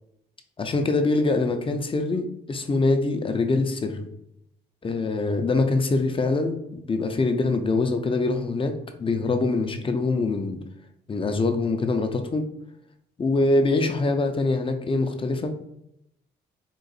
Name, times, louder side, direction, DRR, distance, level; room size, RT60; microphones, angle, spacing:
voice 1, 0.6-4.1 4.8-10.6 11.1-12.5 13.2-15.5, left 3 dB, 25° left, 6 dB, 0.5 m, -24 dB
3.8 x 2.5 x 4.0 m, 0.80 s
cardioid pair, 90°, 20 cm